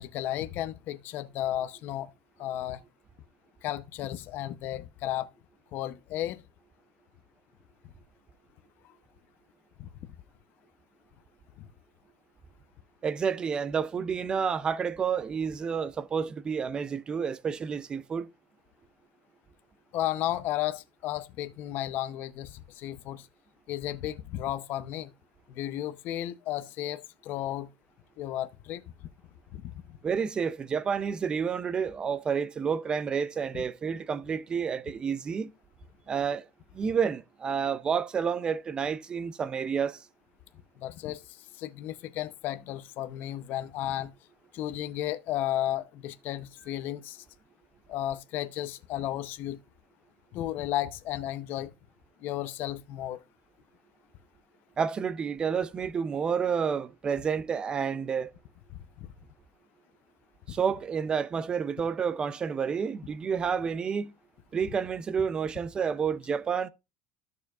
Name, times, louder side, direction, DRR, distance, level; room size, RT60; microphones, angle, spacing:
voice 1, 0.0-2.1 2.4-2.8 3.6-5.3 5.7-6.4 9.8-10.1 11.6-11.7 19.9-23.3 23.7-25.1 25.5-27.7 28.2-28.8 29.5-30.0 33.5-33.6 40.8-44.1 44.5-47.2 47.9-49.6 50.3-51.7 52.2-53.2, left 13 dB, 40° left, 0.7 m, -34 dB
voice 2, 13.0-18.3 30.0-35.5 36.1-36.5 36.7-40.0 54.8-58.3 60.5-64.1 64.5-66.7, right 6 dB, 20° right, 0.4 m, -30 dB
13.0 x 6.8 x 2.4 m
cardioid pair, 175°, 5 cm